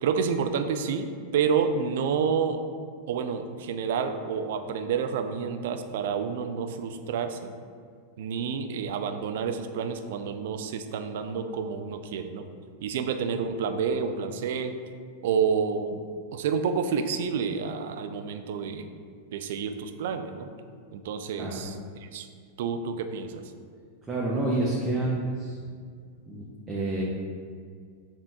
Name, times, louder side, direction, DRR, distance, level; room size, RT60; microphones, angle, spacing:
voice 1, 0.0-1.1 1.3-2.6 3.1-7.5 8.2-12.5 12.8-14.7 15.2-16.0 16.3-18.9 19.3-20.5 20.9-21.7 22.1-22.3 22.6-23.4, right 6 dB, 55° right, 7 dB, 0.3 m, -29 dB
voice 2, 21.4-21.7 24.0-25.6 26.3-27.0, right 2 dB, 15° right, -5 dB, 0.6 m, -29 dB
6.9 x 2.8 x 2.4 m, 2.1 s
figure-of-eight pair, 90°, 0 cm